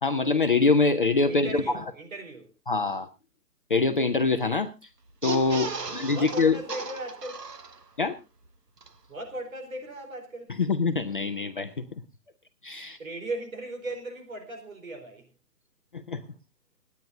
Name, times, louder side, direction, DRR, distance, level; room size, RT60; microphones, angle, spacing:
voice 1, 0.0-1.6 2.7-3.1 3.7-4.7 5.2-6.6 8.0-8.2 10.6-11.7 12.6-13.0 15.9-16.2, left 3 dB, 35° left, 0.6 m, -24 dB
voice 2, 1.3-2.5 5.7-7.4 9.1-10.5 13.0-15.3, right 1 dB, 55° right, 4.4 m, -38 dB
sound 1, 5.1-8.1 8.4-8.5 8.8-8.9, right 4 dB, 80° right, 1.4 m, -36 dB
28.0 x 9.5 x 2.7 m
figure-of-eight pair, 140°, 48 cm